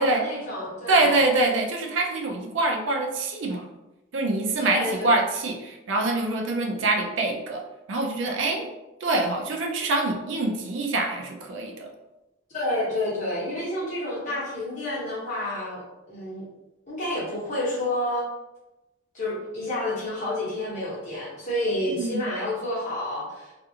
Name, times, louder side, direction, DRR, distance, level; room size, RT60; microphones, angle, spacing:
voice 1, 0.0-1.2 4.6-5.2 12.5-16.4 16.9-18.3 19.1-23.5, left 1 dB, 40° left, -8 dB, 1.1 m, -29 dB
voice 2, 0.9-3.7 4.1-7.6 7.9-8.7 9.0-11.9 22.0-22.3, right 2 dB, 75° right, 2 dB, 0.4 m, -25 dB
2.4 x 2.4 x 2.7 m, 1.0 s
head